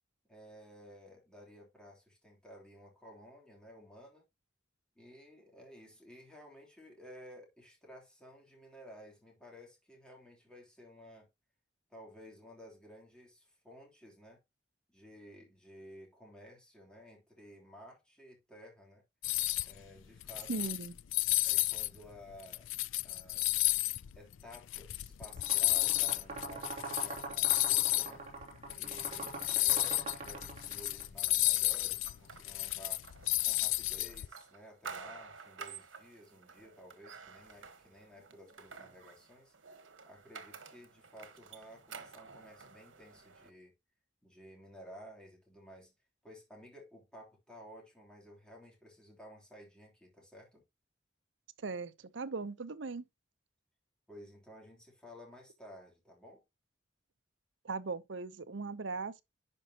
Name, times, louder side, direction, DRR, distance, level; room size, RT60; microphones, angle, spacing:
voice 1, 0.3-4.2 4.9-11.3 11.9-14.4 14.9-19.0 19.6-20.8 21.4-22.7 23.0-23.5 24.1-28.2 28.7-33.0 33.4-39.5 40.1-43.7 44.2-45.9 46.2-50.6 54.1-56.4, equal, 5° left, 3.2 m, -54 dB
sound 1, 19.2-19.7 20.2-21.9 22.3-28.1 28.4-28.5 28.7-34.3, left 19 dB, 90° left, 0.4 m, -32 dB
voice 2, 20.5-21.0 51.6-53.1 57.6-59.2, right 4 dB, 70° right, 0.7 m, -39 dB
sound 2, 25.3-31.0, right 3 dB, 35° right, 2.6 m, -43 dB
sound 3, 31.2-43.5, right 5 dB, 90° right, 1.3 m, -51 dB
10.5 x 5.4 x 2.9 m
head